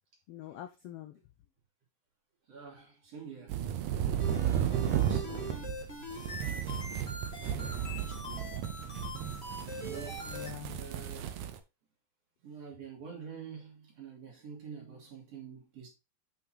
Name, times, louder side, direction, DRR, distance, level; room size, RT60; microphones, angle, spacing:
voice 1, 0.3-1.2 5.4-5.7 7.4-7.8 10.2-10.9, left 13 dB, 80° left, 1.4 m, -46 dB
voice 2, 2.5-4.0 4.6-5.9 6.4-6.9 7.4-8.6 9.8-10.3 10.7-11.4 12.4-15.9, right 6 dB, 55° right, 3.7 m, -47 dB
sound 1, 3.5-11.6, right 10 dB, 75° right, 2.2 m, -34 dB
sound 2, 4.2-10.5, left 1 dB, 25° left, 1.7 m, -43 dB
8.1 x 5.7 x 2.9 m
omnidirectional pair, 3.5 m